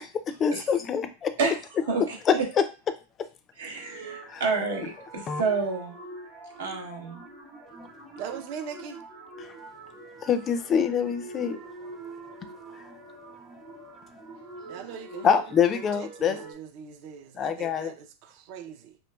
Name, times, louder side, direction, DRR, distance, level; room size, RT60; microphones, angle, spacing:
voice 1, 0.0-1.4 2.3-2.6 4.2-4.4 5.3-5.4 9.4-9.5 10.2-11.9 12.7-12.9 14.3-14.4 14.7-14.9 15.2-16.4 17.4-17.9, left 7 dB, 30° left, 0.3 m, -26 dB
voice 2, 1.9-2.4 3.6-5.9 6.6-7.2, right 4 dB, 85° right, 0.8 m, -29 dB
sound 1, 3.7-16.5, right 3 dB, 35° right, 1.0 m, -45 dB
voice 3, 8.2-9.0 14.7-15.4 15.7-19.0, right 7 dB, 55° right, 0.4 m, -40 dB
3.0 x 2.2 x 2.2 m
hypercardioid pair, 115°, 0 cm